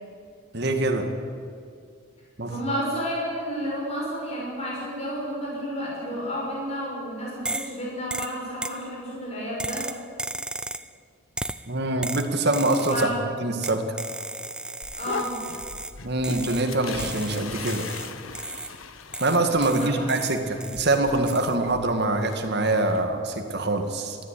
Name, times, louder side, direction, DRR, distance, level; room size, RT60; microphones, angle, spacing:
voice 1, 0.5-1.1 2.4-2.6 11.7-13.1 13.4-14.0 16.0-17.9 19.2-24.2, right 2 dB, 50° right, 5 dB, 2.1 m, -24 dB
voice 2, 2.5-9.9 12.9-13.2 14.9-15.4 19.7-19.9, equal, 30° left, -4 dB, 6.0 m, -31 dB
sound 1, 7.5-7.8 8.1-8.8 9.6-10.9 11.4-11.7 12.0-13.1 13.6-16.0 16.2-16.7 17.0-18.8 19.1-21.0 21.3-21.6, right 2 dB, 5° right, 0.4 m, -35 dB
sound 2, 14.8-23.1, left 4 dB, 75° left, 1.3 m, -39 dB
19.5 x 14.5 x 10.0 m, 2.3 s
head